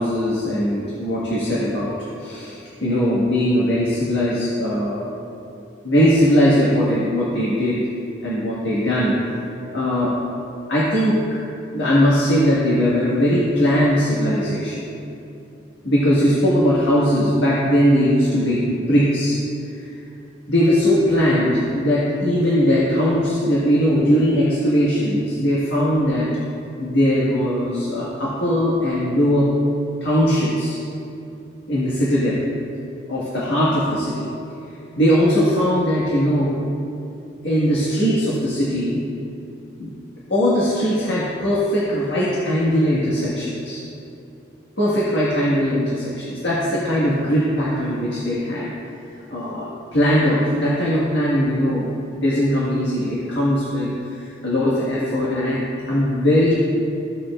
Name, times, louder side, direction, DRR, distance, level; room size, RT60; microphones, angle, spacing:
voice 1, 0.0-1.9 2.2-5.1 5.8-7.8 8.2-9.2 9.7-10.1 10.7-11.2 11.7-14.8 15.8-19.4 20.5-26.3 26.8-29.5 30.0-30.8 31.7-32.4 33.1-34.3 35.0-36.6 37.4-39.0 39.8-39.9 40.3-43.8 44.8-48.7 49.3-55.6 55.9-56.5, equal, 85° left, -8 dB, 1.6 m, -20 dB
15.5 x 6.7 x 2.4 m, 2.7 s
head